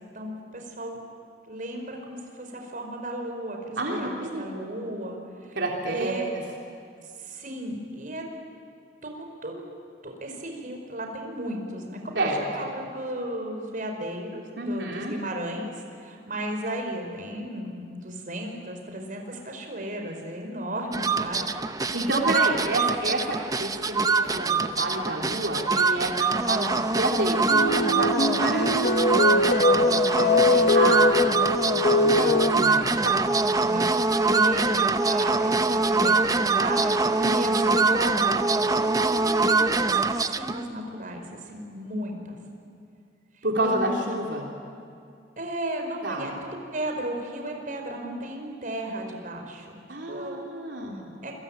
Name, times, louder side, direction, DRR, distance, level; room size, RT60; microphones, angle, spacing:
voice 1, 0.1-1.0 1.4-5.6 5.8-6.3 7.2-8.2 9.0-9.6 10.0-12.3 12.5-21.5 29.3-30.7 33.6-33.9 34.2-42.4 43.6-44.2 45.4-46.3 46.7-49.7 50.1-50.4 51.2-51.3, right 1 dB, 50° right, 3 dB, 4.9 m, -35 dB
voice 2, 3.8-4.4 5.6-6.1 12.2-12.4 14.6-15.1 21.9-28.8 30.7-31.3 31.7-33.2 37.2-37.5 43.4-44.5 46.0-46.3 49.9-51.1, right 1 dB, 85° right, -1 dB, 3.4 m, -29 dB
sound 1, 20.9-40.6, right 3 dB, 20° right, 0.8 m, -24 dB
sound 2, 27.5-32.5, left 2 dB, 60° left, 1.7 m, -22 dB
27.5 x 23.5 x 9.1 m, 2.5 s
head